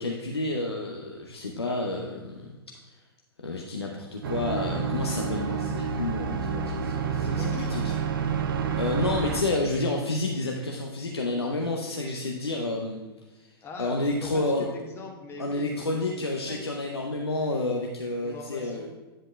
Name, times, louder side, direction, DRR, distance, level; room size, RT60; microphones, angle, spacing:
voice 1, 0.0-2.6 3.4-7.9 8.8-13.0 13.8-14.7 15.4-18.9, left 2 dB, 85° left, 0 dB, 0.7 m, -30 dB
sound 1, 4.2-9.4, right 6 dB, 60° right, 0.7 m, -29 dB
voice 2, 7.2-7.8 13.6-16.8 18.2-18.9, left 2 dB, 20° left, 2 dB, 1.0 m, -41 dB
10.0 x 7.4 x 2.3 m, 1.2 s
figure-of-eight pair, 105°, 13 cm